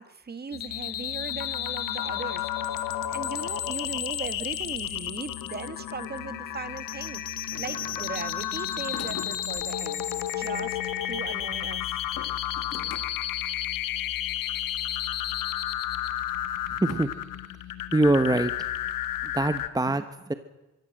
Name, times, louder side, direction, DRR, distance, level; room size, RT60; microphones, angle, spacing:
voice 1, 0.0-2.8 3.1-10.0 10.3-10.8 11.1-12.0, right 4 dB, 30° right, 12 dB, 1.6 m, -38 dB
sound 1, 0.5-19.7, left 11 dB, 85° left, 1.6 m, -32 dB
sound 2, 7.5-8.3 8.9-9.7 12.0-13.4 14.4-14.5 15.3-15.4 16.9-17.0, left 6 dB, 50° left, 2.2 m, -42 dB
voice 2, 17.9-18.5 19.2-20.3, right 2 dB, 10° right, 10 dB, 1.1 m, -23 dB
24.0 x 14.5 x 7.8 m, 1.1 s
cardioid pair, 85°, 33 cm